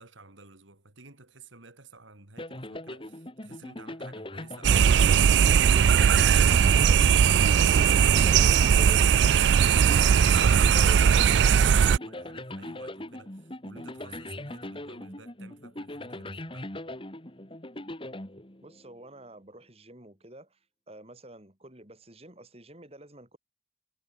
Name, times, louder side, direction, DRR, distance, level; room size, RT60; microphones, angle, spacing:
voice 1, 0.0-16.7, right 3 dB, 85° right, 4.0 m, -52 dB
sound 1, 2.4-18.9, left 1 dB, 25° left, 2.6 m, -40 dB
sound 2, 4.6-12.0, right 7 dB, 65° right, 0.3 m, -19 dB
voice 2, 18.6-20.6 20.9-23.4, right 1 dB, 30° right, 4.2 m, -50 dB
head